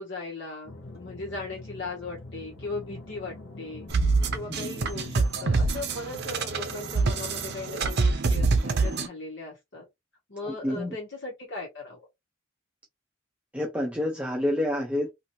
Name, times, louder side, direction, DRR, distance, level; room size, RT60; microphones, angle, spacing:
voice 1, 0.0-9.9 10.3-12.1, left 3 dB, 60° left, 1.3 m, -38 dB
sound 1, 0.6-7.9, left 2 dB, 90° left, 0.8 m, -44 dB
sound 2, 3.9-9.1, right 3 dB, 55° right, 0.6 m, -26 dB
voice 2, 10.4-11.0 13.5-15.1, left 1 dB, 5° right, 0.5 m, -28 dB
2.9 x 2.6 x 2.7 m
head